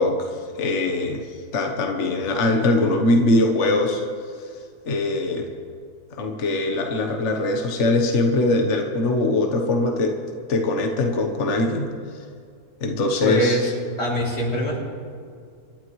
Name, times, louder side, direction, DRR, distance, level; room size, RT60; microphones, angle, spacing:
voice 1, 0.0-4.0 4.8-5.5 6.2-10.1 10.5-11.9 12.8-13.7, left 2 dB, 55° left, 3 dB, 1.4 m, -22 dB
voice 2, 13.2-13.7 14.0-14.8, equal, 90° left, -4 dB, 3.7 m, -23 dB
27.0 x 12.5 x 3.2 m, 2.3 s
omnidirectional pair, 1.6 m